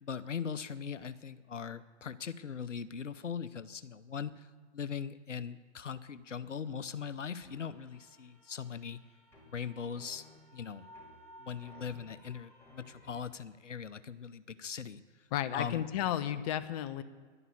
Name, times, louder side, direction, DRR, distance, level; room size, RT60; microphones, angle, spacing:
voice 1, 0.0-4.5 4.7-9.0 9.5-10.3 10.5-10.8 11.4-15.0 15.5-15.8, left 7 dB, 85° left, 15 dB, 0.8 m, -40 dB
sound 1, 7.4-13.2, equal, 5° left, 4.5 m, -57 dB
voice 2, 15.3-17.0, left 11 dB, 30° left, 11 dB, 0.8 m, -33 dB
11.0 x 11.0 x 8.5 m, 1.5 s
figure-of-eight pair, 120°, 36 cm